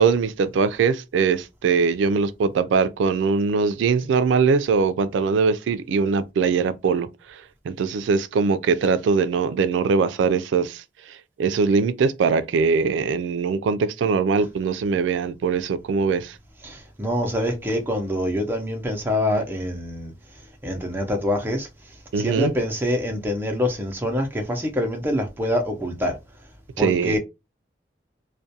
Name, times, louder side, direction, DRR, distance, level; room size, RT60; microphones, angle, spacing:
voice 1, 0.0-10.8 11.1-16.4 22.1-22.5 26.8-27.2, right 5 dB, 90° right, 0.3 m, -22 dB
voice 2, 16.6-20.1 20.6-21.7 22.2-26.2 26.8-27.2, left 1 dB, 10° right, 0.5 m, -25 dB
2.3 x 2.2 x 2.7 m
head